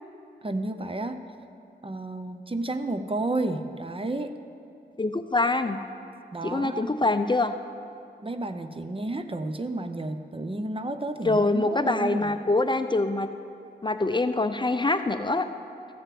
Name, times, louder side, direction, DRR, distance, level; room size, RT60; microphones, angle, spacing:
voice 1, 0.4-1.2 1.8-4.4 6.3-6.9 8.2-12.3, right 2 dB, 30° right, 8 dB, 0.7 m, -31 dB
voice 2, 5.0-5.8 6.4-7.5 11.2-13.3 13.8-15.5, left 2 dB, 25° left, 9 dB, 0.6 m, -24 dB
14.5 x 6.8 x 7.6 m, 2.6 s
cardioid pair, 60°, 18 cm